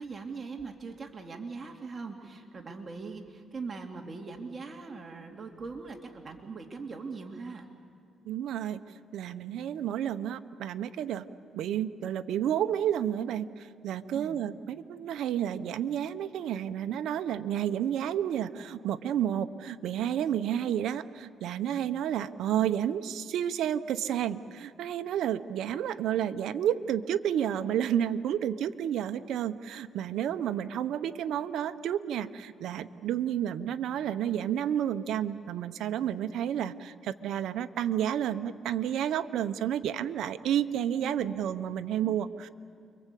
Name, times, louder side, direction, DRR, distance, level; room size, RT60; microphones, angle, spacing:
voice 1, 0.0-7.7 14.1-14.4 41.2-41.4, right 4 dB, 35° right, 3 dB, 2.7 m, -41 dB
voice 2, 8.2-8.8 9.1-11.2 11.5-42.5, right 10 dB, 80° right, 10 dB, 0.9 m, -31 dB
29.5 x 23.5 x 8.4 m, 2.4 s
cardioid pair, 90°, 0 cm